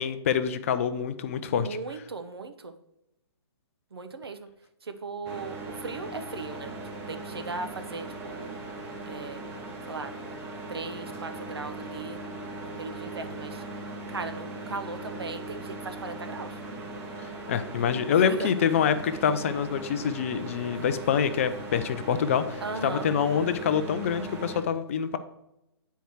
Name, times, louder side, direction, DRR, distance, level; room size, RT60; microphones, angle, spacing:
voice 1, 0.0-1.7 17.2-25.2, left 7 dB, 30° left, 12 dB, 0.5 m, -26 dB
voice 2, 1.5-2.7 3.9-4.5 4.8-6.8 7.1-8.6 9.1-9.4 9.9-10.1 10.7-12.2 12.6-13.6 14.1-16.6 18.2-18.5 22.6-23.1, right 4 dB, 60° right, 8 dB, 0.9 m, -37 dB
sound 1, 5.2-24.6, right 2 dB, 15° right, 0.9 m, -39 dB
9.0 x 4.6 x 4.6 m, 0.87 s
figure-of-eight pair, 135°, 14 cm